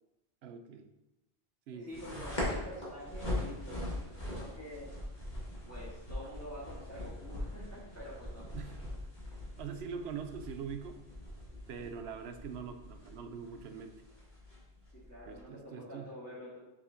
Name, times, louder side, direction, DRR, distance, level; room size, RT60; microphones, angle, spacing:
voice 1, 0.4-0.9 1.7-2.3 8.5-9.0 9.6-11.0 11.7-14.0 15.2-16.1, right 6 dB, 85° right, 8 dB, 0.9 m, -43 dB
voice 2, 1.8-4.9 5.7-8.5 15.1-16.6, left 1 dB, 15° left, -7 dB, 1.5 m, -47 dB
sound 1, 1.9-15.4, left 1 dB, 45° left, 1.8 m, -42 dB
6.4 x 5.6 x 2.7 m, 0.96 s
omnidirectional pair, 1.1 m